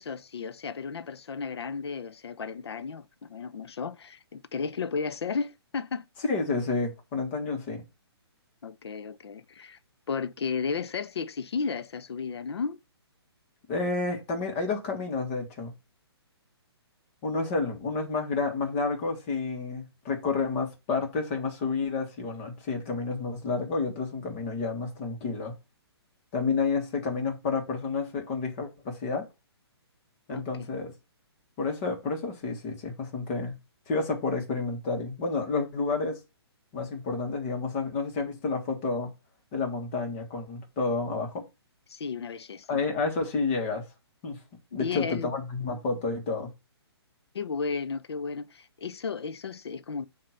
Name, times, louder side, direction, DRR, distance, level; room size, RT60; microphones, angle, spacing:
voice 1, 0.0-6.1 8.6-9.8 10.1-12.8 30.3-30.4 41.9-42.7 44.7-45.3 47.3-50.1, left 5 dB, 75° left, 0.8 m, -34 dB
voice 2, 6.3-7.8 13.7-15.7 17.2-25.5 26.3-29.3 30.3-30.9 31.6-33.6 33.9-36.2 36.7-39.1 39.5-41.5 42.7-43.8 44.2-44.4 44.7-46.5, left 4 dB, 25° left, 1.6 m, -30 dB
7.7 x 2.9 x 5.8 m
hypercardioid pair, 160°, 14 cm